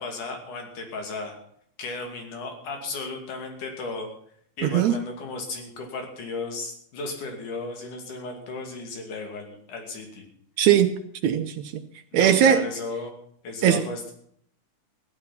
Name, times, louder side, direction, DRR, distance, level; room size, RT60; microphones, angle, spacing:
voice 1, 0.0-1.4 1.8-4.1 4.6-10.3 12.1-13.1 13.4-14.1, left 3 dB, 75° left, 4.1 m, -35 dB
voice 2, 4.6-5.0 10.6-11.0 11.2-11.8 12.1-12.6 13.6-13.8, right 9 dB, 70° right, 2.0 m, -19 dB
15.5 x 11.0 x 5.8 m
omnidirectional pair, 3.6 m